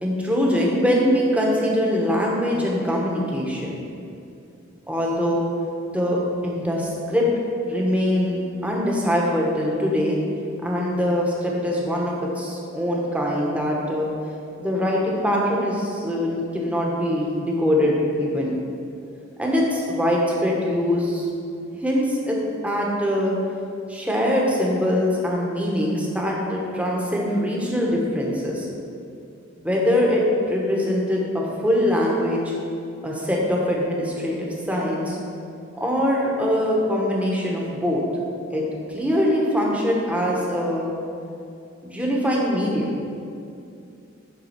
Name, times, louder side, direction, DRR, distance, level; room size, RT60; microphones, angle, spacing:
voice 1, 0.0-3.8 4.9-5.4 5.9-7.3 7.7-10.2 10.6-14.1 14.6-18.5 19.4-21.2 21.8-22.4 22.6-23.3 23.9-28.7 29.6-32.5 33.0-35.2 35.8-38.0 38.5-40.9 41.8-42.9, equal, 5° right, -3 dB, 1.2 m, -23 dB
9.8 x 3.8 x 5.9 m, 2.6 s
head